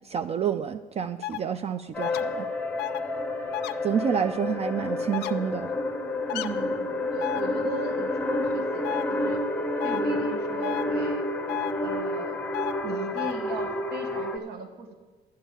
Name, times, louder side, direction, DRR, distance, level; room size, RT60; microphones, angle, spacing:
voice 1, 0.0-2.5 3.8-5.7, right 8 dB, 40° right, 11 dB, 0.4 m, -28 dB
sound 1, 1.2-1.4 2.0-2.2 2.8-3.0 3.5-3.7 5.1-5.3 6.3-6.5 7.2-7.4 8.8-9.0 9.8-10.0 10.6-10.8 11.5-11.7 12.5-12.7 13.2-13.3, left 16 dB, 80° left, 0.4 m, -31 dB
sound 2, 1.9-14.4, left 2 dB, 10° left, 0.8 m, -29 dB
voice 2, 6.3-9.4 9.8-11.2 11.8-12.4 12.8-14.9, right 4 dB, 70° right, 6 dB, 1.1 m, -37 dB
11.0 x 5.4 x 8.6 m, 1.3 s
cardioid pair, 110°, 17 cm